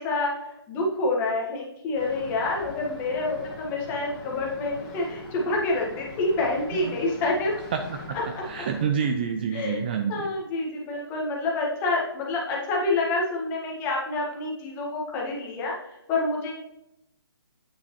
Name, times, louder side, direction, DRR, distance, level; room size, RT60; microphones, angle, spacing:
voice 1, 0.0-7.5 8.3-8.4 9.5-9.8 10.1-15.7 16.1-16.5, left 2 dB, 15° left, -2 dB, 1.5 m, -27 dB
sound 1, 1.9-8.9, left 2 dB, 30° left, 1.7 m, -42 dB
voice 2, 7.7-8.2 8.4-10.3, right 7 dB, 25° right, 5 dB, 0.4 m, -28 dB
8.8 x 5.5 x 3.1 m, 0.84 s
hypercardioid pair, 155°, 13 cm